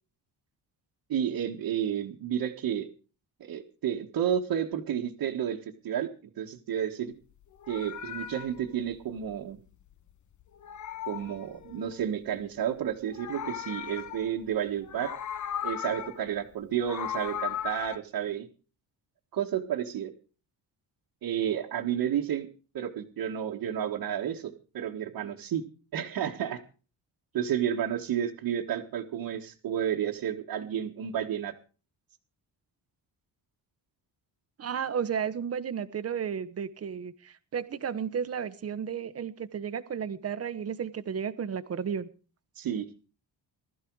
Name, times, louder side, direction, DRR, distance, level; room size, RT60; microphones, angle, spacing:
voice 1, 1.1-2.9 3.4-5.6 5.8-6.1 6.4-7.1 7.7-9.6 11.1-15.1 15.6-18.5 19.3-20.1 21.2-22.5 22.7-25.6 25.9-26.6 27.3-31.5 42.6-42.9, right 9 dB, 70° right, -2 dB, 1.8 m, -31 dB
Meow, 7.4-10.1 10.4-12.1 12.9-14.5 14.8-16.3 16.6-18.0, left 10 dB, 50° left, 1.0 m, -37 dB
voice 2, 34.6-42.1, right 7 dB, 40° right, 12 dB, 1.2 m, -33 dB
20.0 x 13.5 x 4.8 m, 0.38 s
cardioid pair, 160°, 39 cm